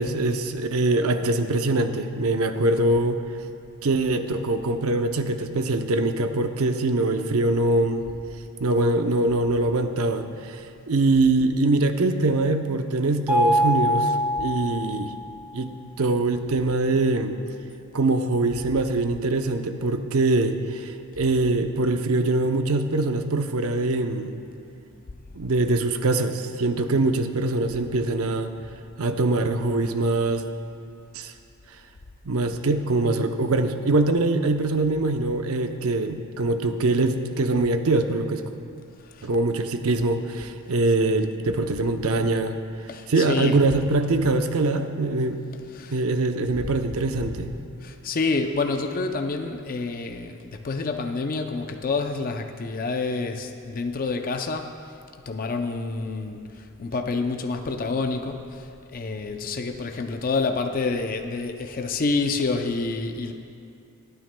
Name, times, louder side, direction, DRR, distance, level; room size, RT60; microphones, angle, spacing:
voice 1, 0.0-3.2 3.8-8.0 8.6-10.6 10.9-14.1 14.4-15.1 15.5-17.4 17.9-20.9 21.2-24.4 25.3-28.5 29.0-30.4 31.1-31.3 32.2-38.4 39.2-42.6 43.1-45.4 45.9-47.5, right 2 dB, 70° right, 7 dB, 0.6 m, -23 dB
Mallet percussion, 13.3-15.3, equal, 5° right, 0.7 m, -23 dB
voice 2, 42.9-43.6 45.7-46.0 47.8-54.8 55.3-63.3, left 3 dB, 40° left, 5 dB, 0.5 m, -28 dB
23.5 x 9.3 x 2.2 m, 2.5 s
head